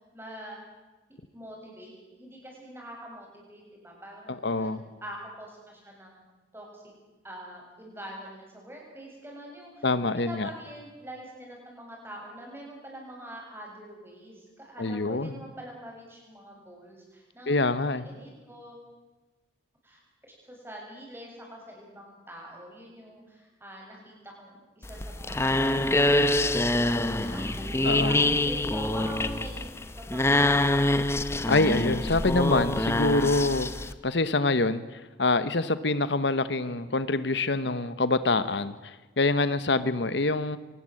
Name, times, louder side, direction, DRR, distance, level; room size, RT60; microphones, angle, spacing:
voice 1, 0.1-0.6 1.3-6.3 6.5-6.8 7.2-9.9 10.2-17.7 18.0-18.8 19.8-20.0 20.5-29.7 29.9-30.9, right 1 dB, 10° right, -1 dB, 7.3 m, -44 dB
voice 2, 4.3-4.8 9.8-10.5 14.8-15.4 17.5-18.1 27.8-28.1 31.5-33.7 34.0-40.6, left 2 dB, 75° left, 13 dB, 1.1 m, -25 dB
sound 1, 24.8-33.9, left 1 dB, 15° left, 0.9 m, -25 dB
24.0 x 20.0 x 7.8 m, 1.2 s
head